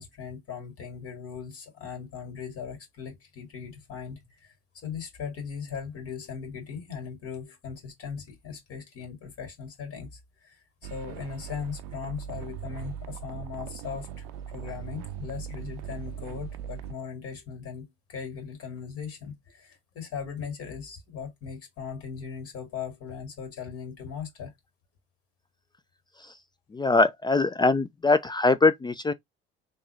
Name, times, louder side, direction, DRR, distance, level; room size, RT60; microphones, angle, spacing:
voice 1, 0.0-10.6 10.9-14.2 14.5-24.5, left 6 dB, 55° left, 2.1 m, -39 dB
sound 1, 10.8-16.9, right 9 dB, 75° right, 0.5 m, -39 dB
voice 2, 26.7-29.1, left 3 dB, 15° left, 0.3 m, -22 dB
3.5 x 2.6 x 3.2 m
hypercardioid pair, 70°, 29 cm